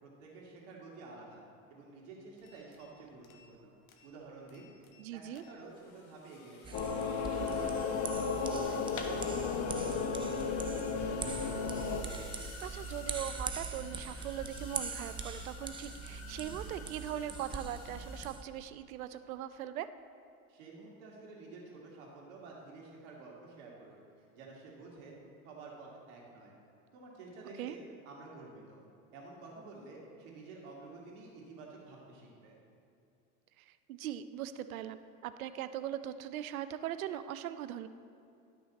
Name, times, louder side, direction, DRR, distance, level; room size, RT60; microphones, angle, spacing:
voice 1, 0.0-1.4 1.7-3.8 4.0-4.7 5.1-6.8 7.2-11.0 20.5-25.1 25.4-26.5 26.9-27.8 28.1-28.8 29.1-32.6, right 3 dB, 65° right, -3 dB, 2.4 m, -50 dB
sound 1, 2.4-2.9 3.2-3.6 3.9-4.1 4.5-5.1 5.3-18.3, left 5 dB, 85° left, 1.2 m, -53 dB
voice 2, 5.0-5.4 12.3-19.9 27.6-27.8 33.6-37.9, right 11 dB, 85° right, 12 dB, 0.6 m, -40 dB
sound 2, 6.6-18.4, right 4 dB, 15° right, 0.4 m, -42 dB
sound 3, 6.7-12.0, left 5 dB, 45° left, 1.0 m, -34 dB
12.0 x 6.2 x 4.1 m, 2.6 s
hypercardioid pair, 105°, 41 cm